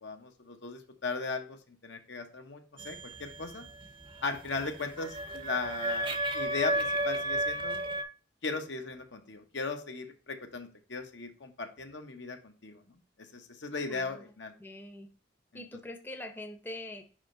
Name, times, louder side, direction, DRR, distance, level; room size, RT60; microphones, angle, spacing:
voice 1, 0.0-3.6 4.2-7.8 8.4-12.8 13.2-14.5 15.5-15.6, left 3 dB, 75° left, 5 dB, 1.0 m, -37 dB
sound 1, 2.8-8.0, right 1 dB, 30° right, 0.7 m, -33 dB
voice 2, 13.9-14.3 14.6-15.1 15.5-17.1, left 1 dB, 10° left, 5 dB, 0.7 m, -43 dB
5.4 x 5.0 x 3.8 m, 0.37 s
head